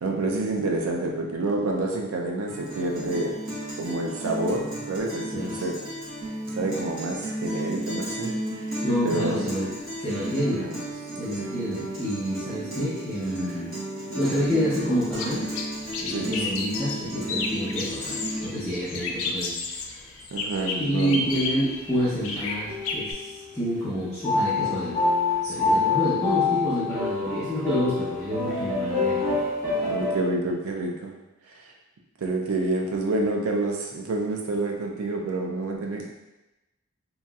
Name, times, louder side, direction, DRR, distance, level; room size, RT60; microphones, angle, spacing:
voice 1, 0.0-3.3 3.8-5.8 6.3-9.5 10.5-10.8 14.1-14.2 16.1-16.6 20.3-21.2 25.4-25.9 29.8-31.2 31.6-31.7 32.2-36.1, right 2 dB, 85° right, 1 dB, 0.4 m, -28 dB
Guitar, 2.5-18.5, right 1 dB, 65° right, 1.2 m, -34 dB
voice 2, 8.8-9.7 10.0-10.7 11.2-13.7 14.2-15.5 16.0-19.8 20.8-25.0 25.5-29.4, equal, 5° left, -13 dB, 0.7 m, -28 dB
sound 1, 14.4-23.1, left 3 dB, 70° left, 0.4 m, -32 dB
sound 2, 21.2-21.9 22.6-23.2 24.2-30.2, left 3 dB, 15° right, 1.0 m, -26 dB
2.9 x 2.7 x 2.3 m, 0.99 s
head